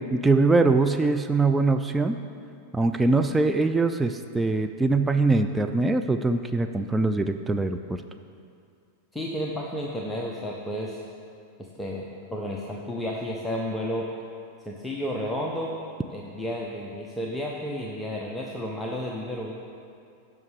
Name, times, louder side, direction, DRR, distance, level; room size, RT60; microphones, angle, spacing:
voice 1, 0.1-2.2 2.7-8.0, right 3 dB, 10° right, 6 dB, 0.3 m, -22 dB
voice 2, 9.1-11.0 11.6-14.1 14.6-15.8 16.1-19.5, equal, 5° left, -2 dB, 0.8 m, -32 dB
15.5 x 5.9 x 3.3 m, 2.4 s
figure-of-eight pair, 90°, 0 cm